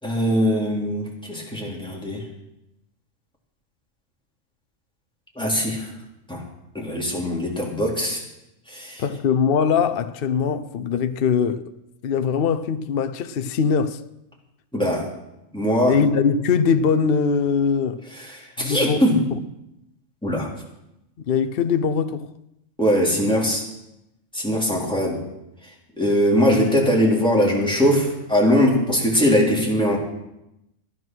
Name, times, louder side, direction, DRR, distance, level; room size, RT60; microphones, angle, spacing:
voice 1, 0.0-2.2 5.3-5.9 6.3-6.4 6.7-8.2 8.7-9.0 14.7-15.1 15.5-16.0 18.2-19.2 20.2-20.5 22.8-23.6 24.3-25.2 26.0-30.0, equal, 5° left, 3.4 m, -21 dB
voice 2, 9.0-11.7 12.0-14.0 15.9-18.0 18.6-19.0 19.3-19.4 21.3-22.3, left 6 dB, 55° left, 0.8 m, -21 dB
15.0 x 11.0 x 6.2 m
omnidirectional pair, 1.4 m